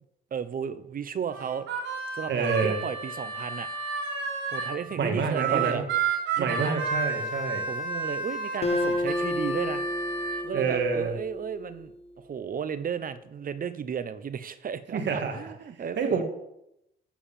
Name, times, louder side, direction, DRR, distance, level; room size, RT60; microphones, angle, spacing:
voice 1, 0.3-1.7 2.1-3.7 4.5-5.8 6.4-6.7 7.7-9.8 10.4-16.2, right 7 dB, 45° right, 13 dB, 0.9 m, -34 dB
Harmonica, 1.3-4.8 5.3-10.4, right 4 dB, 85° right, 3.5 m, -31 dB
voice 2, 2.3-2.8 5.0-5.8 6.4-7.7 10.5-11.1 14.9-15.4 16.0-16.2, right 5 dB, 65° right, 4 dB, 2.1 m, -27 dB
Acoustic guitar, 8.6-12.1, left 1 dB, 30° left, 0.9 m, -31 dB
14.0 x 4.8 x 7.4 m, 0.84 s
cardioid pair, 90°, 20 cm